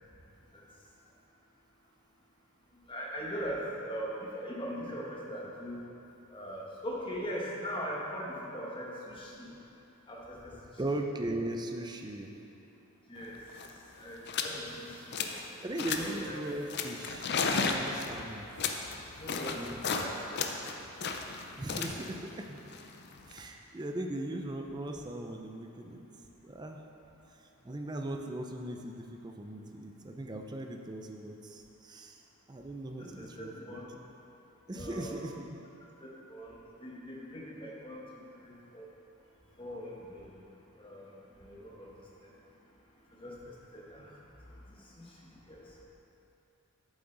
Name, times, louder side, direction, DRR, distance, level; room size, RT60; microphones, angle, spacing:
voice 1, 2.9-5.8 6.3-9.5 10.1-10.6 13.1-13.4 14.0-15.4 16.0-16.4 19.2-20.5 33.0-33.9 34.7-35.3 36.0-38.0 38.4-38.9 39.6-40.4 40.8-41.1 41.3-41.9 42.2-42.3 43.2-44.1 44.7-45.6, equal, 25° left, -4 dB, 1.1 m, -41 dB
voice 2, 10.8-12.3 15.6-18.5 19.4-20.1 21.6-22.6 23.2-26.1 26.4-26.8 27.6-32.2 32.5-33.8 34.7-35.6, right 1 dB, 20° right, 3 dB, 0.4 m, -39 dB
sound 1, 13.2-13.3 13.5-13.8 14.3-14.6 14.9-15.5 15.8-16.2 16.7-20.1 20.4-23.4, left 5 dB, 50° left, 0.5 m, -34 dB
8.7 x 7.2 x 3.9 m, 2.9 s
head